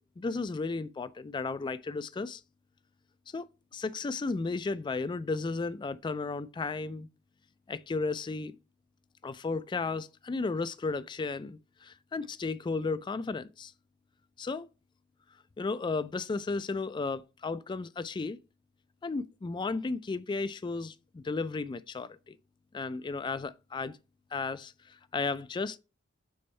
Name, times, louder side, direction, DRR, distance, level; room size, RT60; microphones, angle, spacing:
voice 1, 0.0-2.4 3.3-7.1 7.7-8.5 9.2-13.7 14.4-14.7 15.6-18.4 19.0-22.4 22.7-24.0 24.3-25.8, left 3 dB, 20° left, 0.3 m, -34 dB
7.0 x 4.3 x 3.2 m
head